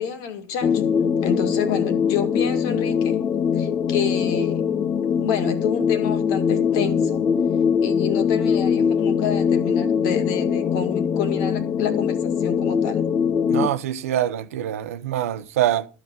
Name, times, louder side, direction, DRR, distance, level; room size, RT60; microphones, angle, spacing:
voice 1, 0.0-3.2 3.5-4.6 5.2-7.3 7.8-13.0, left 7 dB, 60° left, 2.2 m, -28 dB
sound 1, 0.6-13.7, left 7 dB, 35° left, 1.0 m, -22 dB
voice 2, 13.5-15.9, right 11 dB, 75° right, 0.8 m, -24 dB
12.5 x 5.1 x 7.6 m
hypercardioid pair, 85°, 8 cm